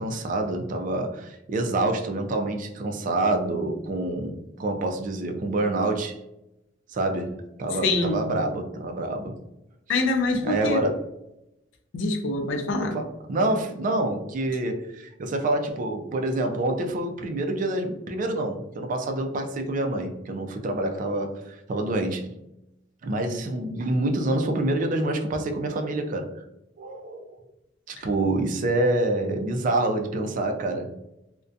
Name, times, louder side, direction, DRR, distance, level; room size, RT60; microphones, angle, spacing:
voice 1, 0.0-6.1 6.9-9.4 10.4-10.9 12.9-22.3 23.0-26.3 26.8-27.3 27.9-31.0, right 2 dB, 40° right, 4 dB, 0.3 m, -27 dB
voice 2, 7.8-8.3 9.9-10.8 11.9-13.0, left 2 dB, 75° left, 5 dB, 0.4 m, -25 dB
2.6 x 2.1 x 2.4 m, 0.89 s
head